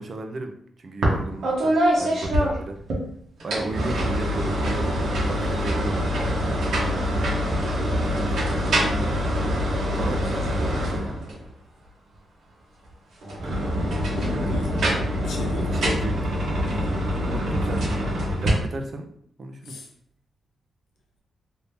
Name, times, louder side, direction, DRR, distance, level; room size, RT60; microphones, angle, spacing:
voice 1, 0.0-2.8 3.4-6.3 8.1-8.6 10.0-10.2 14.3-14.8 15.7-16.9 17.2-17.9 18.4-19.1 19.4-19.8, right 2 dB, 55° right, 5 dB, 0.5 m, -35 dB
sound 1, 1.0-1.2 1.4-3.0 3.4-11.5 13.2-18.5, equal, 80° right, 1.0 m, -24 dB
voice 2, 9.8-11.1 14.1-14.7 15.2-15.8 19.6-19.9, left 3 dB, 90° left, 0 dB, 0.8 m, -37 dB
3.5 x 2.7 x 2.7 m, 0.67 s
cardioid pair, 80°, 0 cm